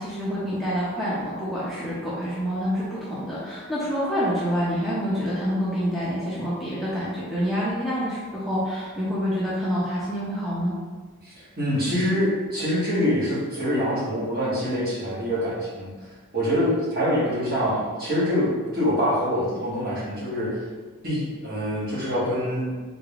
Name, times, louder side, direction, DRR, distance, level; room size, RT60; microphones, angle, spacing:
voice 1, 0.0-10.8, equal, ahead, -9 dB, 0.5 m, -27 dB
voice 2, 11.2-15.9 16.3-20.6 21.0-22.7, equal, 45° right, -9 dB, 1.3 m, -25 dB
3.6 x 3.4 x 2.4 m, 1.4 s
head